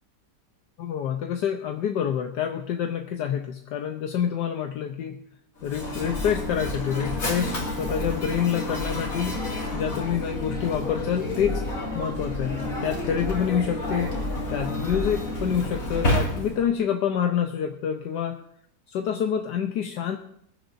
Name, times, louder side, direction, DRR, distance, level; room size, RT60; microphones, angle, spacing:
voice 1, 0.8-5.2 5.6-9.3 9.7-11.6 11.9-14.1 14.5-18.4 18.9-20.2, left 8 dB, 80° left, 4 dB, 1.4 m, -27 dB
Mechanisms, 5.6-16.7, left 1 dB, 50° left, 2.8 m, -29 dB
20.5 x 11.5 x 2.6 m, 0.66 s
omnidirectional pair, 1.8 m